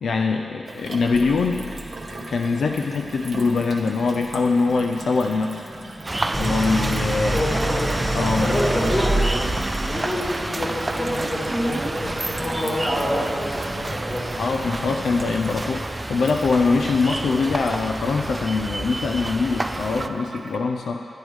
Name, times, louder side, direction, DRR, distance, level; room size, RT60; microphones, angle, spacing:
voice 1, 0.0-1.7 2.3-5.7 6.4-7.4 8.1-8.6 14.4-21.1, left 4 dB, 85° left, 3 dB, 0.3 m, -23 dB
Gurgling / Water tap faucet / Sink (filling or washing), 0.7-20.6, right 2 dB, 45° right, 0.9 m, -38 dB
sound 1, 6.0-20.1, right 1 dB, 20° right, 0.3 m, -29 dB
Idling, 6.3-10.6, right 1 dB, 5° left, 1.7 m, -26 dB
voice 2, 7.3-7.9 8.2-9.3 9.9-14.3, left 1 dB, 35° left, -4 dB, 2.1 m, -27 dB
11.5 x 9.0 x 3.1 m, 2.6 s
wide cardioid pair, 80°, 0 cm